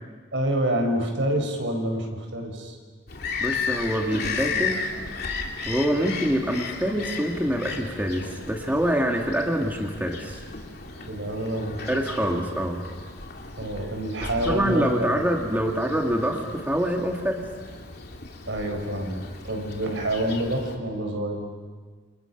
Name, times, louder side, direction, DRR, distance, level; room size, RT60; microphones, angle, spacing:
voice 1, 0.3-2.8 10.9-11.8 13.6-15.2 18.5-21.5, right 1 dB, 75° right, 3 dB, 5.5 m, -27 dB
Bird vocalization bird call bird song, 3.1-20.8, left 4 dB, 55° left, 2.9 m, -35 dB
voice 2, 3.4-4.8 5.7-10.4 11.9-12.8 14.4-17.4, equal, 10° right, 1 dB, 1.9 m, -25 dB
29.5 x 28.5 x 5.9 m, 1.5 s
head